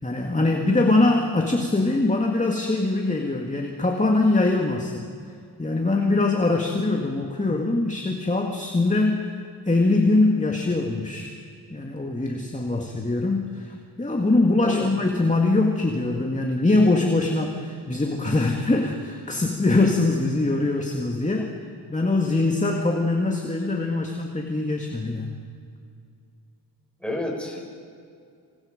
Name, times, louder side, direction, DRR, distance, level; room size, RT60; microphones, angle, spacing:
voice 1, 0.0-5.0 5.6-9.3 9.7-11.3 11.7-21.5 21.9-25.4, left 2 dB, 20° left, 2 dB, 2.2 m, -22 dB
voice 2, 14.6-15.0 27.0-27.6, left 1 dB, ahead, -1 dB, 6.2 m, -30 dB
27.5 x 27.5 x 5.3 m, 2.3 s
wide cardioid pair, 95°, 41 cm